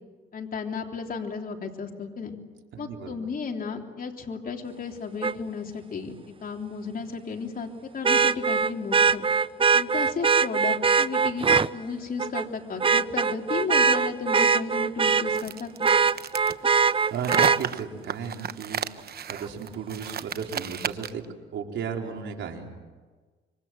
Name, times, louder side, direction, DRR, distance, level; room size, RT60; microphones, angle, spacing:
voice 1, 0.3-2.4 2.8-9.3 9.7-15.9, left 5 dB, 45° left, 2 dB, 3.5 m, -34 dB
voice 2, 2.7-3.2 17.1-21.2 21.5-22.7, right 6 dB, 70° right, 1 dB, 4.4 m, -35 dB
Vehicle horn car horn honking, 5.2-5.3 8.0-11.7 12.2-12.5 12.8-15.4 15.8-17.6 19.4-19.5, right 5 dB, 25° right, 0.7 m, -22 dB
sound 1, 15.3-21.3, right 8 dB, 50° right, 1.0 m, -33 dB
26.5 x 25.0 x 7.7 m, 1.4 s
cardioid pair, 90°, 20 cm